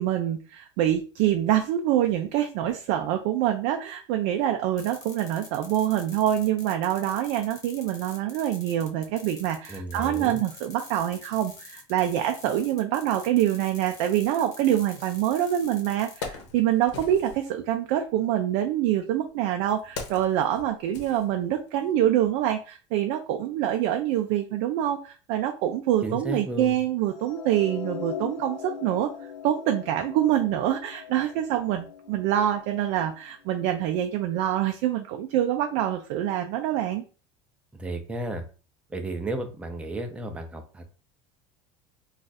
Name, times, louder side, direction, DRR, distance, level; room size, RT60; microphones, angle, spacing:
voice 1, 0.0-29.1 29.4-37.0, right 11 dB, 60° right, 5 dB, 0.4 m, -25 dB
sound 1, 4.8-16.2, left 3 dB, 25° left, 1.0 m, -46 dB
voice 2, 9.7-10.4 26.0-26.8 37.7-38.4 38.9-40.8, right 1 dB, 10° right, 5 dB, 0.5 m, -33 dB
Wood, 15.4-15.5 15.9-17.5 18.5-21.8 22.1-22.3, left 4 dB, 90° left, 0.9 m, -40 dB
sound 2, 27.1-33.3, left 7 dB, 50° left, 1.0 m, -40 dB
2.5 x 2.4 x 3.9 m, 0.36 s
supercardioid pair, 135°, 14 cm